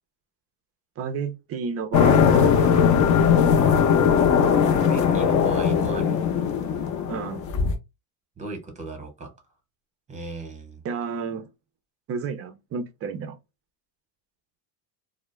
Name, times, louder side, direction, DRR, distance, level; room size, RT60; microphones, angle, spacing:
voice 1, 1.0-3.0 7.1-7.5 10.8-11.5 12.1-13.4, right 5 dB, 35° right, 0.4 m, -32 dB
sound 1, 1.9-7.7, left 7 dB, 40° left, 0.5 m, -19 dB
voice 2, 4.7-6.2 8.4-9.3 10.1-10.8, right 2 dB, 15° right, 0.8 m, -36 dB
2.2 x 2.0 x 3.0 m
cardioid pair, 140°, 46 cm